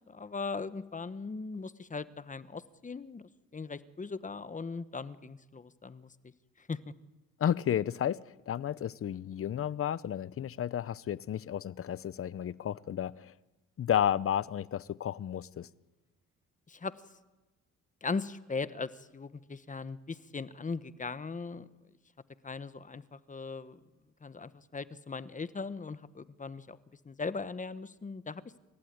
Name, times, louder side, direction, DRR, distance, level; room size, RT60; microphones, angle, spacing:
voice 1, 0.1-6.1 6.6-6.9 16.7-16.9 18.0-21.7 22.4-23.8 24.2-26.8 27.0-28.6, left 4 dB, 25° left, 1.2 m, -39 dB
voice 2, 7.4-8.2 8.5-13.3 13.8-15.7, left 10 dB, 50° left, 0.7 m, -32 dB
28.0 x 15.5 x 9.5 m
cardioid pair, 90°, 30 cm